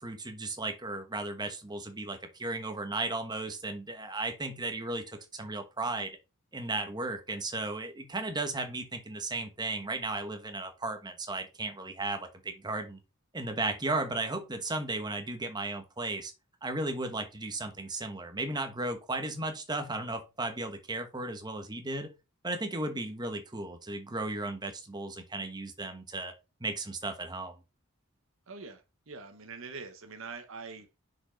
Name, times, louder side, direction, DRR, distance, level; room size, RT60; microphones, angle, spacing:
voice 1, 0.0-6.2 6.5-13.0 13.3-16.3 16.6-22.1 22.4-26.3 26.6-27.6, right 2 dB, 20° right, 1.1 m, -35 dB
voice 2, 28.5-31.0, right 4 dB, 65° right, 0.9 m, -44 dB
6.3 x 5.0 x 3.9 m
head